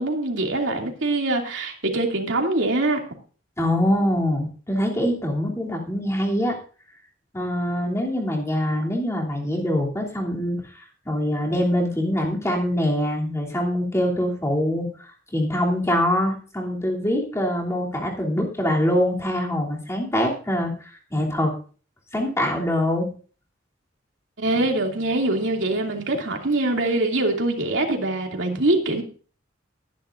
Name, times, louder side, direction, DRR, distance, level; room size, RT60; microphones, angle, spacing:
voice 1, 0.0-3.0 24.4-29.0, right 2 dB, 80° right, 1 dB, 2.7 m, -23 dB
voice 2, 3.6-6.6 7.3-10.6 11.0-14.9 15.3-21.5 22.1-23.1, equal, 15° left, -2 dB, 3.0 m, -24 dB
20.0 x 10.5 x 2.6 m, 0.39 s
head